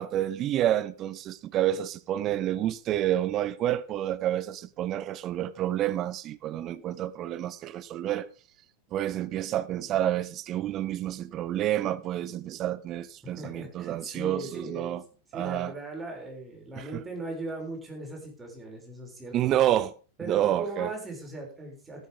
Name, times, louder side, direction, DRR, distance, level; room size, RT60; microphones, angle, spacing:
voice 1, 0.0-8.3 8.9-15.0 15.3-15.7 16.8-17.0 19.3-19.9 20.2-20.9, right 12 dB, 35° right, 0.9 m, -29 dB
voice 2, 13.4-15.0 15.3-19.3 20.2-22.1, right 2 dB, 15° right, 6.8 m, -38 dB
14.0 x 12.5 x 3.7 m
figure-of-eight pair, 90°, 0 cm